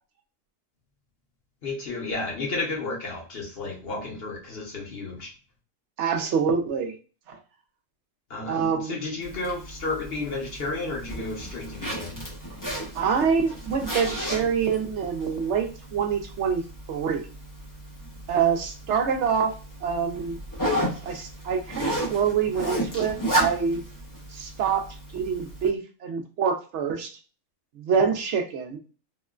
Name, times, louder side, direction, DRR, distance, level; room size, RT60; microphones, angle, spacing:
voice 1, 1.6-5.3 8.3-12.2, left 3 dB, 50° left, -1 dB, 1.0 m, -32 dB
voice 2, 6.0-6.9 7.3-7.4 8.5-9.0 12.9-16.6 16.9-17.3 18.3-19.5 19.8-20.4 21.0-23.8 24.3-24.9 25.1-27.1 27.8-28.8, right 6 dB, 65° right, 3 dB, 0.8 m, -26 dB
Zipper (clothing), 9.2-25.7, right 1 dB, 25° left, 0.4 m, -33 dB
3.6 x 2.1 x 2.3 m, 0.35 s
omnidirectional pair, 1.4 m